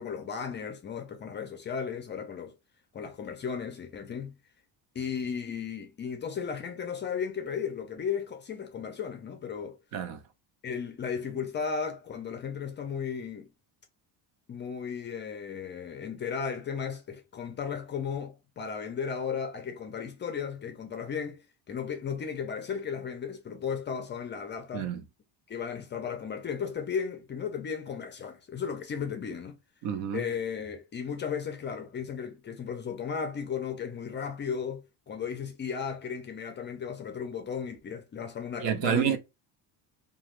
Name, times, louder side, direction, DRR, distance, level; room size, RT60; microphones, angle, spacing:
voice 1, 0.0-2.5 2.9-4.3 4.9-9.8 10.6-13.5 14.5-24.9 25.5-29.6 30.1-39.2, left 6 dB, 25° left, 0.4 m, -35 dB
voice 2, 29.8-30.2 38.6-39.2, right 8 dB, 75° right, 0.8 m, -28 dB
2.9 x 2.3 x 3.1 m
cardioid pair, 160°, 44 cm